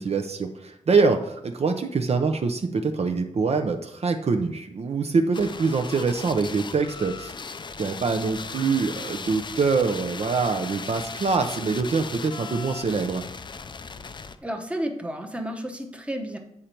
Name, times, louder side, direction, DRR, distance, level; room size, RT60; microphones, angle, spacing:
voice 1, 0.0-7.3 7.8-13.2, right 4 dB, 50° right, 5 dB, 0.6 m, -24 dB
sound 1, 5.3-14.4, left 4 dB, 35° left, 0.4 m, -37 dB
voice 2, 14.4-16.4, right 1 dB, 10° right, 4 dB, 0.9 m, -31 dB
8.5 x 5.2 x 4.4 m, 0.80 s
wide cardioid pair, 130°, 13 cm